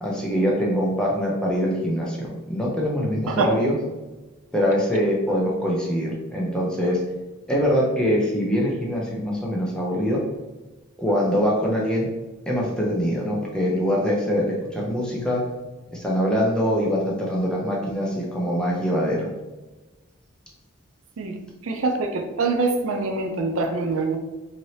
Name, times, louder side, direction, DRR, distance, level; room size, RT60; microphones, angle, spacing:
voice 1, 0.0-3.8 4.5-7.0 7.5-10.2 11.0-12.1 12.5-15.4 16.0-19.3, equal, 5° left, -4 dB, 0.5 m, -23 dB
voice 2, 21.6-24.2, right 3 dB, 90° right, 5 dB, 0.4 m, -24 dB
2.8 x 2.7 x 3.1 m, 1.1 s
head